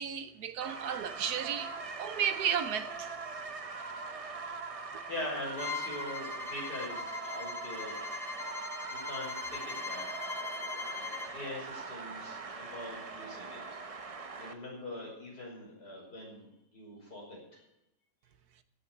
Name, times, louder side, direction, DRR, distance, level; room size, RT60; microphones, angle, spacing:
voice 1, 0.0-1.7 2.0-3.2, right 8 dB, 70° right, 1.3 m, -33 dB
sound 1, 0.6-14.5, right 4 dB, 35° right, 0.5 m, -42 dB
voice 2, 5.1-8.0 8.9-10.1 10.9-13.8 14.3-17.6, left 1 dB, 75° left, 6.2 m, -43 dB
Bowed string instrument, 5.6-11.3, left 5 dB, 45° left, 1.1 m, -40 dB
16.0 x 7.0 x 8.4 m
omnidirectional pair, 1.8 m